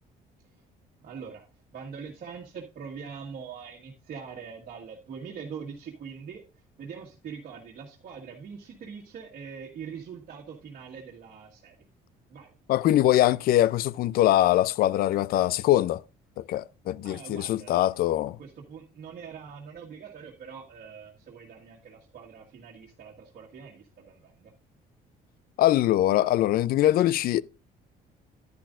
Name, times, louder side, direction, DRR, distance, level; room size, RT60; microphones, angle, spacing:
voice 1, 1.0-6.4 6.8-11.8 12.3-12.6 17.0-18.1 18.4-24.5, right 6 dB, 55° right, 1.6 m, -43 dB
voice 2, 12.7-16.0 16.4-18.4 25.6-27.4, left 13 dB, 60° left, 0.4 m, -23 dB
10.5 x 10.5 x 2.4 m
cardioid pair, 110°, 17 cm